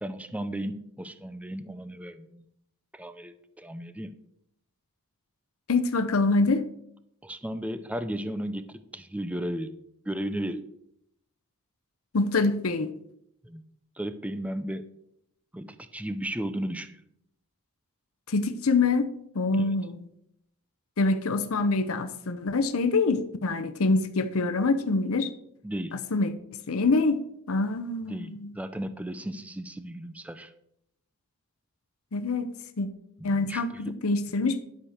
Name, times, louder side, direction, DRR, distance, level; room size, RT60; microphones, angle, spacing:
voice 1, 0.0-2.5 2.9-4.1 7.2-9.7 10.1-10.7 13.4-13.6 14.0-14.9 15.5-17.0 19.6-19.7 25.6-26.0 28.1-30.5 33.2-33.9, right 1 dB, 5° right, 11 dB, 0.5 m, -35 dB
voice 2, 5.7-6.6 12.1-12.9 18.3-19.1 19.3-20.0 21.0-25.3 25.9-26.3 26.7-27.2 27.5-28.5 32.1-32.5 32.8-32.9 33.2-34.6, left 3 dB, 70° left, 10 dB, 0.7 m, -25 dB
11.5 x 5.0 x 6.4 m, 0.75 s
head